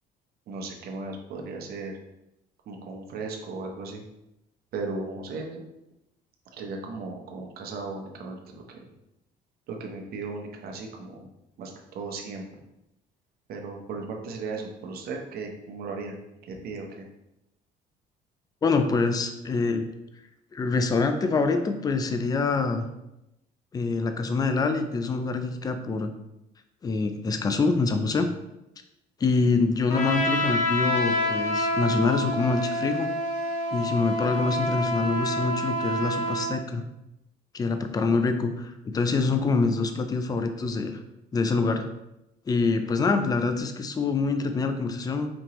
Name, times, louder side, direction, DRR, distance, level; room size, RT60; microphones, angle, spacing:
voice 1, 0.5-2.0 2.7-4.0 4.7-5.6 6.5-8.8 9.7-11.3 11.6-12.5 13.5-16.2 16.4-17.0, right 3 dB, 65° right, 2 dB, 0.8 m, -36 dB
voice 2, 18.6-19.8 20.5-22.9 23.7-26.1 26.8-28.3 29.2-33.1 33.7-36.8 37.5-41.0 41.3-41.9 42.5-45.3, left 4 dB, 20° left, 7 dB, 0.4 m, -25 dB
Trumpet, 29.9-36.5, left 1 dB, 45° left, 0.9 m, -27 dB
5.2 x 2.9 x 3.0 m, 0.88 s
cardioid pair, 110°, 17 cm